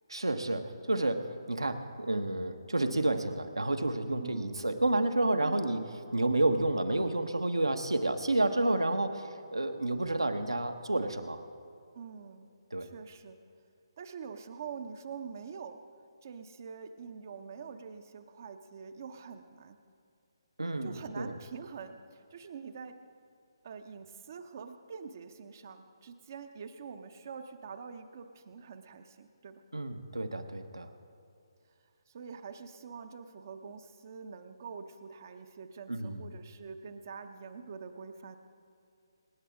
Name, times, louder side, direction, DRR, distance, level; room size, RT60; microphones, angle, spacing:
voice 1, 0.1-5.8 6.1-11.4 12.7-12.9 20.6-21.4 29.7-30.9 35.9-36.2, right 2 dB, 75° right, 7 dB, 1.3 m, -30 dB
voice 2, 4.2-4.6 5.4-5.6 11.9-12.5 12.8-13.4 14.0-15.8 16.2-19.8 20.8-23.0 23.6-29.6 32.1-38.4, right 6 dB, 40° right, 7 dB, 0.8 m, -45 dB
25.5 x 10.0 x 3.7 m, 2.5 s
figure-of-eight pair, 140°, 3 cm